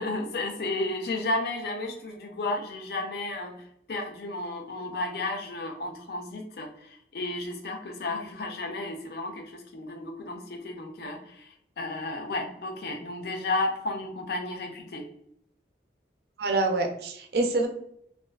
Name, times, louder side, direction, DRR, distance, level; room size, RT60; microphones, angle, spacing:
voice 1, 0.0-3.6 3.9-11.5 11.8-15.0, left 2 dB, 60° left, 4 dB, 0.4 m, -33 dB
voice 2, 16.4-17.7, right 2 dB, 65° right, 4 dB, 0.4 m, -26 dB
2.4 x 2.3 x 2.2 m, 0.70 s
head